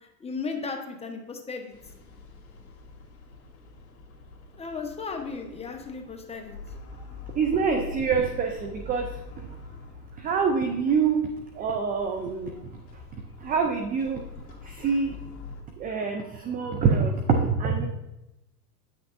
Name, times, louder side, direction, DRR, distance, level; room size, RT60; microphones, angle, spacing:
voice 1, 0.2-1.7 4.6-6.6, left 4 dB, 15° left, 3 dB, 0.9 m, -35 dB
sound 1, 1.7-15.6, left 3 dB, 30° left, 1.5 m, -45 dB
voice 2, 7.3-9.2 10.2-11.3 11.5-12.5 13.4-14.2 14.6-15.2 15.8-17.9, right 5 dB, 20° right, 4 dB, 0.4 m, -25 dB
9.0 x 6.1 x 2.6 m, 0.93 s
hypercardioid pair, 105°, 49 cm